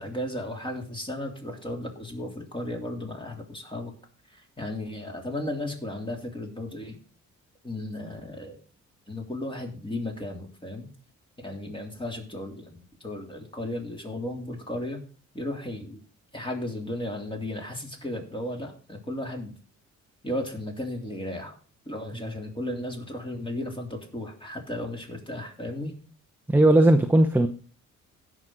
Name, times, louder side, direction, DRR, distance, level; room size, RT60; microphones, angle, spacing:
voice 1, 0.0-3.9 4.3-7.0 7.6-8.6 9.1-10.9 11.4-15.0 15.3-16.0 16.3-19.5 20.2-21.6 21.8-25.9, left 1 dB, 15° left, 1 dB, 3.4 m, -35 dB
voice 2, 26.5-27.5, right 1 dB, 5° right, 5 dB, 0.8 m, -18 dB
16.5 x 6.1 x 4.0 m, 0.39 s
cardioid pair, 90°, 30 cm